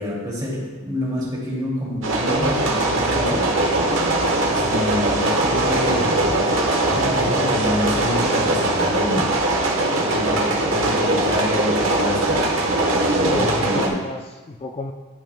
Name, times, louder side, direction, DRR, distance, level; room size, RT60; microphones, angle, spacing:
voice 1, 0.0-3.5 4.5-6.4 6.9-9.3 9.9-12.4 13.0-14.0, left 1 dB, 20° right, -6 dB, 2.5 m, -27 dB
sound 1, 2.0-13.9, right 2 dB, 75° right, 1.1 m, -21 dB
voice 2, 13.1-14.9, left 2 dB, 30° left, 3 dB, 0.4 m, -30 dB
12.0 x 5.7 x 2.2 m, 1.2 s
head